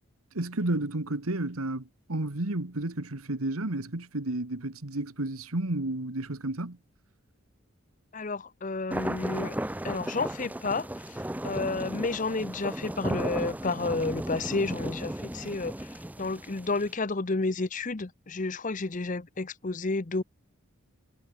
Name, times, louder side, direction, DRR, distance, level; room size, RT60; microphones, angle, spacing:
voice 1, 0.3-6.8, right 2 dB, 80° right, 1.8 m, -31 dB
voice 2, 8.1-9.6 9.8-11.2 11.4-20.2, left 3 dB, 35° left, 0.7 m, -31 dB
sound 1, 8.9-16.9, right 1 dB, 5° right, 0.5 m, -35 dB
head